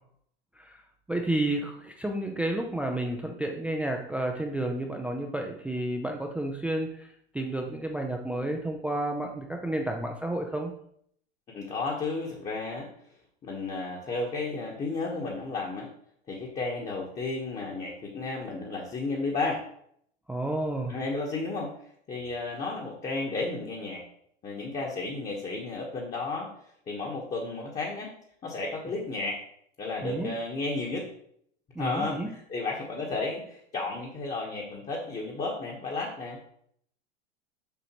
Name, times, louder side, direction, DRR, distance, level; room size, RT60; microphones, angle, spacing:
voice 1, 1.1-7.1 7.3-10.7 20.3-21.0 30.0-30.3 31.8-32.3, right 1 dB, 5° right, 2 dB, 0.4 m, -31 dB
voice 2, 11.5-12.9 13.4-15.9 16.3-19.6 20.9-21.7 22.1-24.0 24.4-26.5 26.9-28.1 28.4-29.4 29.8-31.1 31.8-36.5, left 3 dB, 20° left, -1 dB, 1.2 m, -33 dB
7.1 x 4.9 x 3.0 m, 0.68 s
hypercardioid pair, 110°, 33 cm